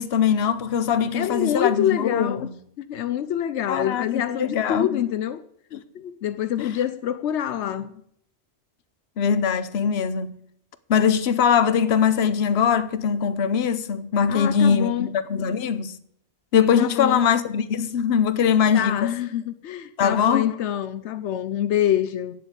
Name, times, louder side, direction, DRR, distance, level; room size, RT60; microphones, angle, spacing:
voice 1, 0.0-2.6 3.7-5.0 5.7-6.2 6.6-6.7 7.6-7.9 9.2-10.4 10.9-16.0 16.5-19.1 20.0-20.5, left 7 dB, 70° left, 1.0 m, -22 dB
voice 2, 1.1-2.5 2.8-5.4 6.2-7.9 14.3-15.1 16.8-17.2 18.7-22.3, left 10 dB, 85° left, 0.9 m, -26 dB
9.0 x 7.9 x 8.7 m
omnidirectional pair, 1.1 m